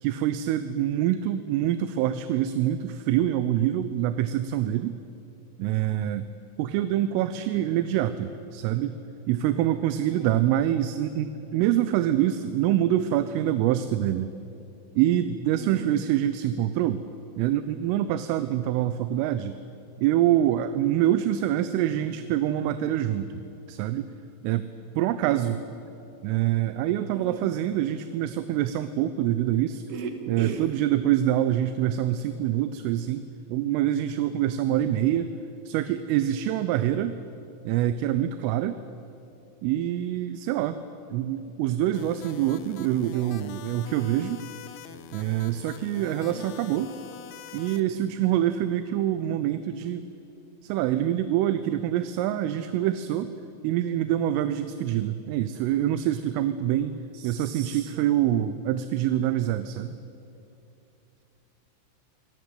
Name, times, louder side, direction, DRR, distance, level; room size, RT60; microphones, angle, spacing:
voice 1, 0.0-5.0 5.6-6.3 6.6-9.0 9.3-14.3 15.0-17.0 17.4-19.6 20.0-23.4 23.7-24.1 24.4-25.6 26.2-29.8 30.3-35.3 35.7-37.2 37.7-38.8 39.6-40.8 41.1-44.4 45.1-46.9 47.5-50.1 50.6-53.4 53.6-59.9, right 12 dB, 85° right, 11 dB, 3.3 m, -25 dB
voice 2, 10.1-10.4 15.5-15.9 25.2-25.6 27.1-27.4 29.9-30.6 46.3-46.5 57.1-58.1, right 5 dB, 60° right, 4 dB, 3.9 m, -38 dB
sound 1, 42.0-47.8, left 9 dB, 80° left, 2.3 m, -44 dB
27.0 x 18.0 x 9.4 m, 2.7 s
omnidirectional pair, 5.8 m